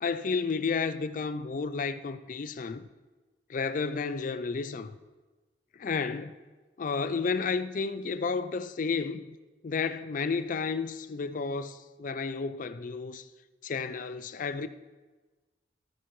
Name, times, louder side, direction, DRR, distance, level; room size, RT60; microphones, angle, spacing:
voice 1, 0.0-2.8 3.5-5.0 5.8-6.4 6.8-9.4 9.6-13.2 13.6-14.7, left 5 dB, 50° left, 0.4 m, -32 dB
14.0 x 8.9 x 3.2 m
head